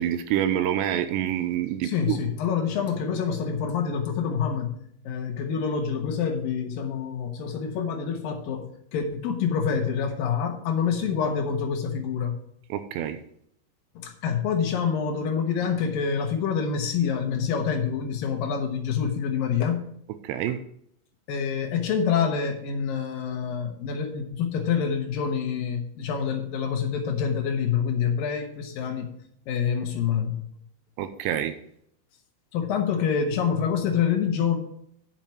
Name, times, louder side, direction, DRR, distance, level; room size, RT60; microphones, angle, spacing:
voice 1, 0.0-2.2 12.7-13.2 20.2-20.6 31.0-31.6, right 11 dB, 80° right, 10 dB, 2.7 m, -27 dB
voice 2, 1.8-12.4 14.0-19.8 21.3-29.1 29.5-30.4 32.5-34.6, left 7 dB, 70° left, 4 dB, 2.4 m, -27 dB
9.9 x 7.4 x 4.7 m, 0.68 s
omnidirectional pair, 5.3 m